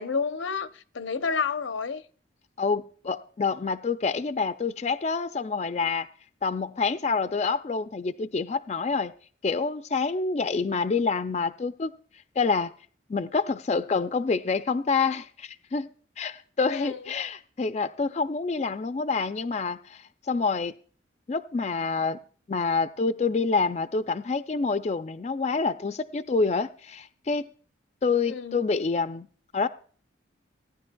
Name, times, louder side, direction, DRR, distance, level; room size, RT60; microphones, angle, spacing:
voice 1, 0.0-2.0 16.7-17.0 28.3-28.7, left 5 dB, 90° left, 0.7 m, -30 dB
voice 2, 2.6-6.1 6.4-9.1 9.4-11.9 12.4-12.7 13.1-15.9 16.2-20.7 21.3-22.2 22.5-27.5 28.0-29.3 29.5-29.7, left 4 dB, 35° left, 0.4 m, -27 dB
17.5 x 10.0 x 2.2 m
head